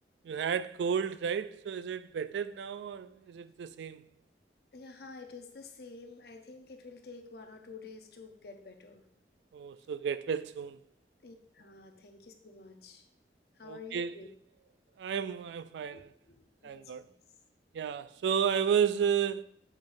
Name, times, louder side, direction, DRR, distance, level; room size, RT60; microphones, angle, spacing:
voice 1, 0.2-4.0 9.5-10.8 13.6-14.1 15.0-16.1 16.6-17.1 17.7-19.4, right 7 dB, 80° right, 0.3 m, -32 dB
voice 2, 4.7-9.0 11.2-13.0 13.6-14.3 15.9-17.1, left 4 dB, 60° left, 0.7 m, -49 dB
7.3 x 5.2 x 2.6 m
head